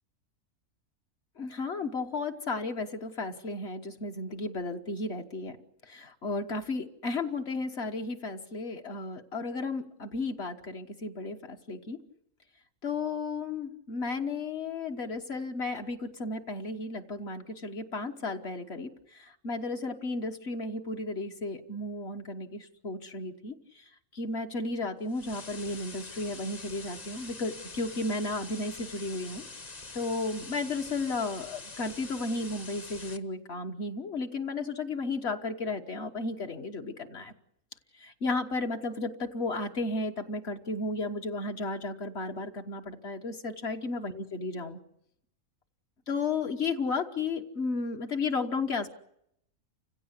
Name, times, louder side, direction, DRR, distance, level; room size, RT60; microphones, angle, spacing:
voice 1, 1.4-5.6 5.8-12.0 12.8-29.4 29.9-37.3 38.0-44.8 46.1-48.9, left 3 dB, 50° left, 4 dB, 1.4 m, -34 dB
sound 1, 25.1-33.2, left 3 dB, 30° left, 1.1 m, -45 dB
29.5 x 16.0 x 8.1 m, 0.78 s
omnidirectional pair, 1.5 m